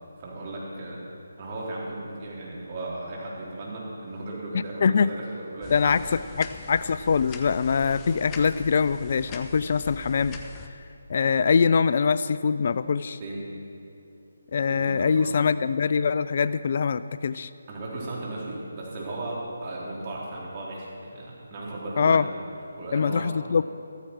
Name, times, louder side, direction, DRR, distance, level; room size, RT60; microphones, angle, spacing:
voice 1, 0.2-1.0 1.4-6.2 13.2-13.5 14.7-15.3 17.7-22.2 22.7-23.3, right 2 dB, 35° right, -5 dB, 3.6 m, -36 dB
voice 2, 4.8-5.1 5.7-10.4 11.1-13.2 14.5-17.5 22.0-22.3 22.9-23.6, left 5 dB, 45° left, 15 dB, 0.3 m, -23 dB
sound 1, 5.6-10.7, left 4 dB, 20° left, 0.7 m, -42 dB
14.0 x 13.5 x 4.6 m, 2.6 s
figure-of-eight pair, 150°, 0 cm